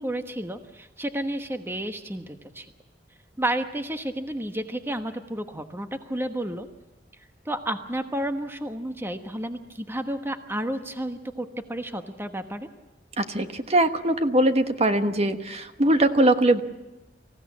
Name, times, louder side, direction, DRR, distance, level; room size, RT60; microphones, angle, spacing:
voice 1, 0.0-2.7 3.4-6.7 7.4-12.7, right 1 dB, 15° right, 7 dB, 1.2 m, -31 dB
voice 2, 13.2-16.6, right 1 dB, 35° right, 8 dB, 1.3 m, -21 dB
25.5 x 16.0 x 8.4 m, 1.1 s
head